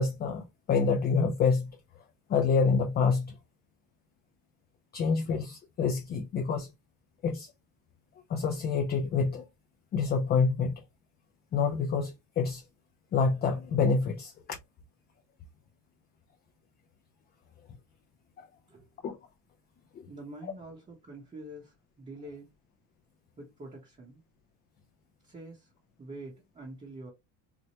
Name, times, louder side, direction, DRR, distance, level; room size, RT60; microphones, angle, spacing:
voice 1, 0.0-1.8 2.3-3.4 4.9-6.7 7.2-7.5 8.3-9.4 9.9-10.8 11.5-12.6 13.1-14.3 18.4-18.5 19.0-19.2, left 5 dB, 25° left, 0.4 m, -27 dB
voice 2, 20.1-22.5 23.4-24.2 25.2-25.7 26.0-27.1, right 2 dB, 15° right, 0.8 m, -45 dB
4.3 x 2.1 x 2.8 m
cardioid pair, 150°, 40 cm